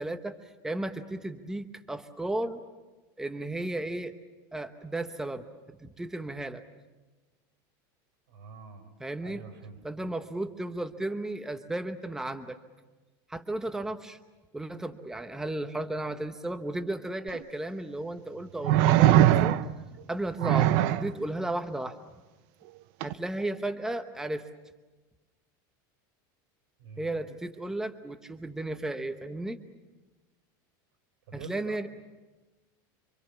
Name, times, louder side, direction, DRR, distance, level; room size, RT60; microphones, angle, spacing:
voice 1, 0.0-2.6 3.2-4.2 4.5-5.5 5.8-6.6 9.0-9.4 9.8-12.6 13.3-14.2 14.5-19.6 20.1-22.1 23.0-24.5 27.0-29.6 31.3-31.9, right 1 dB, 5° right, 8 dB, 1.0 m, -34 dB
voice 2, 8.3-8.9 9.2-10.1 26.8-27.1 31.3-31.8, right 5 dB, 80° right, 7 dB, 5.7 m, -46 dB
sound 1, 17.3-17.4 18.6-19.9 20.4-21.1 23.0-23.1, right 13 dB, 65° right, 0.8 m, -21 dB
27.5 x 24.5 x 7.2 m, 1.2 s
supercardioid pair, 135°, 11 cm